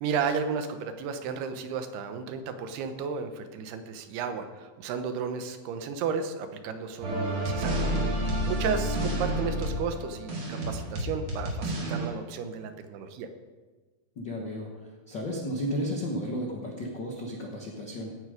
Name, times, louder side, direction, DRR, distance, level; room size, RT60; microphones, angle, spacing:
voice 1, 0.0-7.9 8.5-13.3, right 6 dB, 80° right, 8 dB, 3.0 m, -33 dB
sound 1, 7.0-12.1, right 1 dB, 45° right, 4.1 m, -29 dB
voice 2, 14.2-14.7 15.1-18.2, equal, 80° left, 0 dB, 1.0 m, -33 dB
16.5 x 9.7 x 5.0 m, 1.3 s
omnidirectional pair, 4.6 m